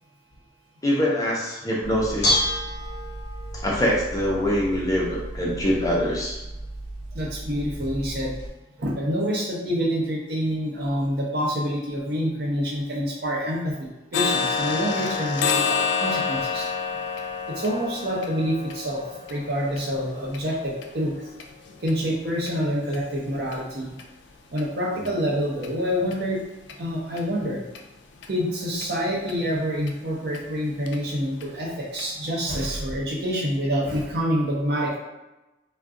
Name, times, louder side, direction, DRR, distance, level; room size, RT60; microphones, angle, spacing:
voice 1, 0.8-2.4 3.5-6.4 25.0-25.1, equal, 20° left, -5 dB, 0.6 m, -24 dB
Bell / Dishes pots and pans, 1.8-8.5, equal, 65° left, 0.8 m, -31 dB
voice 2, 7.1-8.3 8.8-16.7 17.5-21.3 21.8-23.9 24.5-26.4 26.8-27.6 28.3-35.0, equal, 60° right, -4 dB, 0.8 m, -27 dB
sound 1, 14.1-21.9 22.4-22.5 22.9-23.1 23.5-23.6 24.0-24.1 24.6-24.7 25.0-25.1 25.6-25.7 26.1-26.2 26.7-26.8 27.2-27.3 27.7-27.8 28.2-28.3 28.8-28.9 29.3-29.4 29.9-30.0 30.3-30.4 30.9-31.0 31.4-31.5 32.0-32.1, left 5 dB, 80° left, 0.3 m, -28 dB
2.3 x 2.2 x 3.7 m, 0.99 s
head